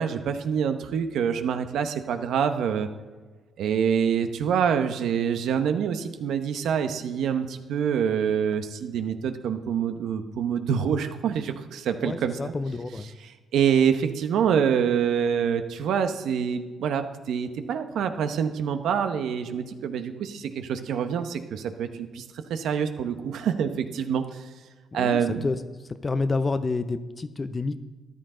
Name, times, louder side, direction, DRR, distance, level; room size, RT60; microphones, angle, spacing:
voice 1, 0.0-2.9 3.6-12.5 13.2-22.2 22.5-24.5 24.9-25.4, right 7 dB, 75° right, 8 dB, 0.9 m, -26 dB
voice 2, 12.0-13.1 24.9-25.6 25.9-27.8, left 3 dB, 30° left, 12 dB, 0.7 m, -29 dB
13.5 x 11.0 x 3.9 m, 1.3 s
cardioid pair, 90°, 0 cm